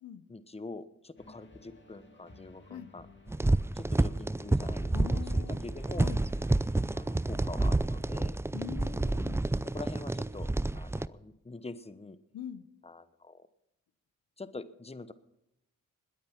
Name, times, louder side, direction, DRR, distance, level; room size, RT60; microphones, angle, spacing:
voice 1, 0.3-3.1 3.7-6.1 6.9-8.4 9.6-12.2 12.8-13.5 14.4-15.1, left 3 dB, 20° left, 14 dB, 1.0 m, -45 dB
sound 1, 1.2-8.1, left 2 dB, 35° left, 2.6 m, -55 dB
sound 2, 3.3-11.1, right 2 dB, 10° right, 0.4 m, -29 dB
voice 2, 4.9-5.6 6.0-6.2 8.5-9.4 12.3-12.6, left 10 dB, 90° left, 13 dB, 0.8 m, -42 dB
20.5 x 9.0 x 5.7 m, 0.89 s
cardioid pair, 45°, 33 cm